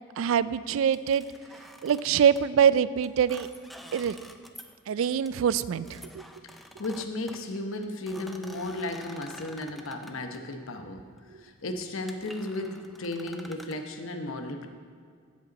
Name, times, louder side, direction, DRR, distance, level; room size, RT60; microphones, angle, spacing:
voice 1, 0.2-1.3 1.8-3.5 3.9-4.2 4.9-6.2, right 8 dB, 80° right, 16 dB, 0.3 m, -24 dB
sound 1, 0.9-2.5 3.0-4.8 5.0-5.3 5.8-10.4 11.1-11.4 11.8-11.9 12.1-13.8, equal, ahead, 0.3 m, -48 dB
voice 2, 6.8-11.1 11.4-14.7, left 2 dB, 85° left, 5 dB, 0.9 m, -34 dB
15.0 x 5.3 x 4.0 m, 2.1 s
head